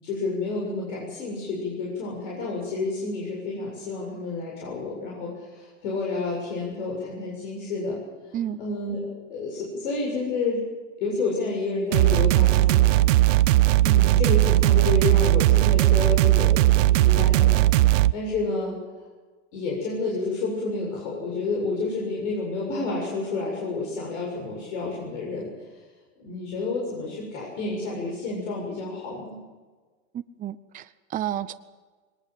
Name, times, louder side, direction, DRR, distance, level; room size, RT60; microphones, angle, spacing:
voice 1, 0.0-8.0 8.6-10.6 11.0-13.0 13.8-17.6 18.1-18.8 19.5-25.5 26.2-29.4, left 3 dB, 65° left, -2 dB, 7.6 m, -30 dB
sound 1, 11.9-18.1, right 16 dB, 80° right, 0.8 m, -18 dB
voice 2, 30.1-31.5, right 11 dB, 20° right, 10 dB, 0.7 m, -31 dB
22.0 x 19.5 x 7.7 m, 1.4 s
supercardioid pair, 130°, 38 cm